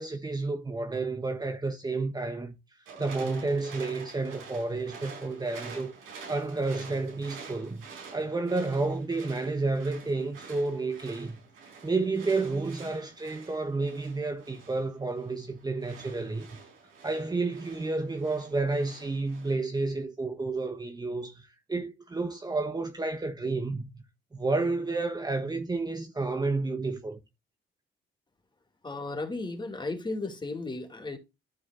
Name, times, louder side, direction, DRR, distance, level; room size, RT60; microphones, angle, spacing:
voice 1, 0.0-2.6 3.0-5.9 6.3-11.4 11.8-16.5 17.0-23.9 24.3-27.2, right 3 dB, 20° right, 1.2 m, -30 dB
sound 1, 2.9-19.5, right 5 dB, 90° right, 5.3 m, -48 dB
voice 2, 28.8-31.2, left 2 dB, 25° left, 2.6 m, -35 dB
13.5 x 4.9 x 2.6 m
cardioid pair, 90°, 20 cm